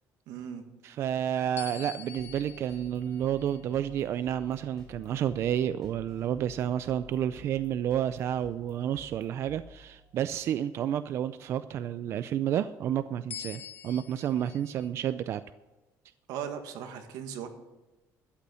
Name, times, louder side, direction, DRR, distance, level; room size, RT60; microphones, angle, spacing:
voice 1, 0.3-0.6 16.3-17.5, right 8 dB, 80° right, 6 dB, 1.7 m, -38 dB
voice 2, 0.8-15.4, right 10 dB, 45° right, 13 dB, 0.4 m, -30 dB
sound 1, 1.6-6.3 6.9-7.1 13.3-14.9, left 9 dB, 30° left, 0.3 m, -47 dB
sound 2, 2.2-10.3, left 4 dB, 5° left, 5.1 m, -54 dB
12.5 x 8.3 x 6.8 m, 1.1 s
cardioid pair, 175°, 6 cm